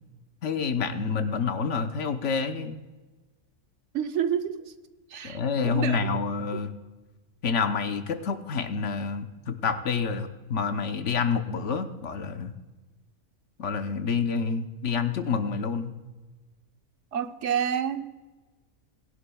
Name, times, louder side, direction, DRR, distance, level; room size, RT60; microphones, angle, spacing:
voice 1, 0.4-2.8 5.2-6.7 7.4-12.5 13.6-15.9, left 5 dB, 65° left, 7 dB, 1.2 m, -28 dB
voice 2, 3.9-4.7 5.1-6.0 17.1-18.0, right 8 dB, 65° right, 8 dB, 1.0 m, -29 dB
20.0 x 11.0 x 2.3 m, 1.2 s
omnidirectional pair, 1.4 m